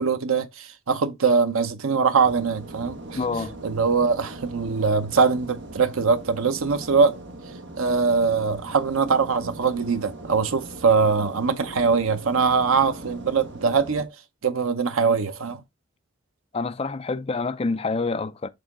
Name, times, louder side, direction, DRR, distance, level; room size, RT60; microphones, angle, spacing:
voice 1, 0.0-3.2 3.6-7.2 7.8-14.1 14.4-15.6, right 5 dB, 85° right, 0.7 m, -22 dB
sound 1, 2.2-14.1, right 1 dB, 55° right, 1.2 m, -40 dB
voice 2, 3.2-3.6 16.5-18.5, left 3 dB, 30° left, 0.4 m, -27 dB
6.7 x 3.9 x 3.6 m
head